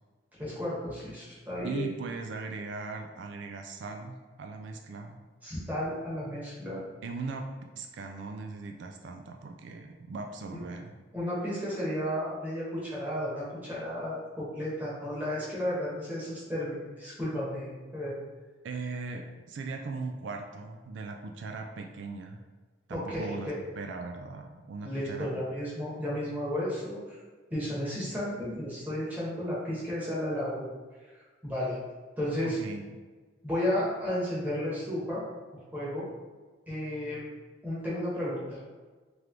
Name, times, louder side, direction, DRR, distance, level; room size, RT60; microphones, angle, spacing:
voice 1, 0.4-1.9 5.4-6.8 10.5-10.6 11.1-18.1 22.9-23.5 24.8-27.2 27.5-30.7 31.4-31.8 32.2-32.6 33.4-35.2 35.7-36.0 36.7-37.2 37.6-38.6, left 1 dB, 10° right, -8 dB, 1.2 m, -33 dB
voice 2, 1.6-5.2 7.0-7.5 7.8-10.9 18.6-22.4 22.9-25.3 32.4-33.0, right 4 dB, 75° right, 4 dB, 0.3 m, -39 dB
3.2 x 3.1 x 3.7 m, 1.4 s
head